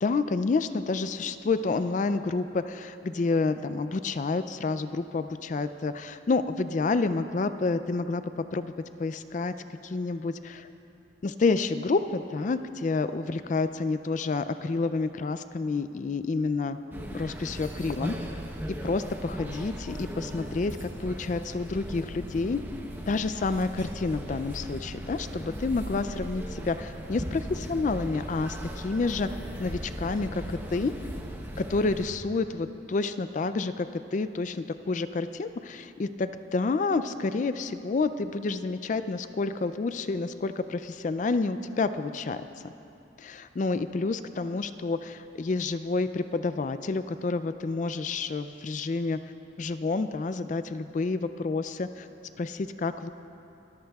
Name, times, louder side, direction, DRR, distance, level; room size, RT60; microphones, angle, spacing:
voice 1, 0.0-8.2 8.5-8.7 9.0-9.5 9.8-10.7 11.2-16.8 17.1-18.1 18.8-22.6 23.1-29.3 29.6-30.9 31.6-42.7 43.2-49.2 49.6-52.1 52.4-53.1, left 3 dB, 40° left, 11 dB, 0.3 m, -29 dB
sound 1, 16.9-32.1, equal, 10° right, 0.8 m, -38 dB
25.0 x 14.0 x 2.3 m, 2.9 s
head